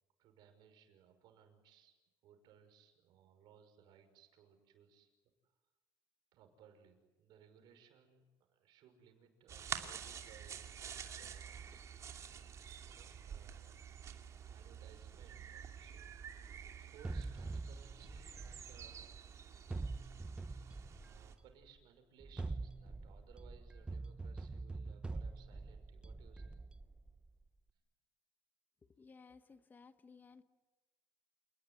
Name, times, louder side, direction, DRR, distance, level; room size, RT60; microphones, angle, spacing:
voice 1, 0.2-2.0 2.2-5.1 6.3-11.7 12.8-13.8 14.5-19.3 21.0-26.6, right 7 dB, 65° right, 6 dB, 5.9 m, -64 dB
sound 1, 9.5-21.4, right 8 dB, 40° right, 2.7 m, -49 dB
sound 2, 17.0-19.2 19.7-21.5 22.2-27.3, right 3 dB, 10° right, 0.9 m, -44 dB
voice 2, 29.0-30.4, left 5 dB, 25° left, 10 dB, 1.2 m, -59 dB
28.5 x 19.5 x 9.4 m, 1.2 s
cardioid pair, 130°, 8 cm